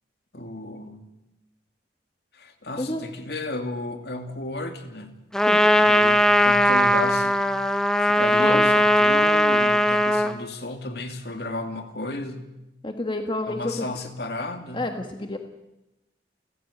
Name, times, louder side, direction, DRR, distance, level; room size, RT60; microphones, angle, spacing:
voice 1, 0.3-1.0 2.3-5.2 5.8-7.5 8.0-12.4 13.5-14.8, left 2 dB, 60° left, 6 dB, 2.6 m, -33 dB
Trumpet, 5.3-10.4, equal, 5° left, 1.0 m, -19 dB
voice 2, 12.8-13.9 14.7-15.4, left 1 dB, 25° left, 5 dB, 1.4 m, -29 dB
29.0 x 15.0 x 8.6 m, 0.96 s
head